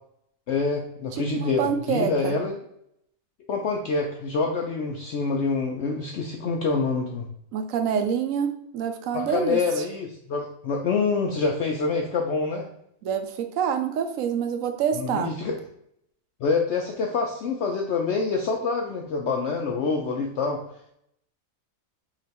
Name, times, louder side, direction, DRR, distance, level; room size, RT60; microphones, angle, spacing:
voice 1, 0.5-2.6 3.5-7.3 9.1-12.7 14.9-15.6 16.4-20.6, left 4 dB, 65° left, 1 dB, 0.7 m, -26 dB
voice 2, 1.1-2.3 7.5-9.8 13.0-15.3, right 7 dB, 70° right, 6 dB, 0.9 m, -27 dB
3.2 x 3.0 x 4.1 m, 0.75 s
omnidirectional pair, 1.5 m